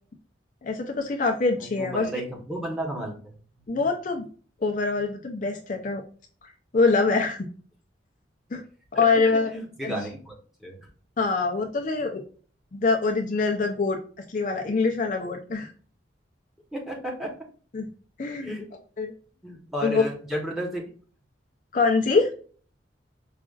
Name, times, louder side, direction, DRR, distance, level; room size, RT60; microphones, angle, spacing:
voice 1, 0.6-2.1 3.7-4.2 4.6-6.0 6.7-7.4 8.5-8.6 8.9-9.5 9.8-9.9 11.2-12.2 12.7-14.0 14.3-15.7 17.7-17.9 18.2-18.6 19.0-19.1 19.8-20.0 21.7-22.3, left 4 dB, 45° left, 3 dB, 0.5 m, -24 dB
voice 2, 1.6-3.4 8.9-9.0 9.5-10.3 10.6-10.9 16.7-17.3 18.4-18.7 19.4-20.9, equal, ahead, -1 dB, 0.9 m, -32 dB
5.0 x 2.4 x 2.3 m, 0.42 s
head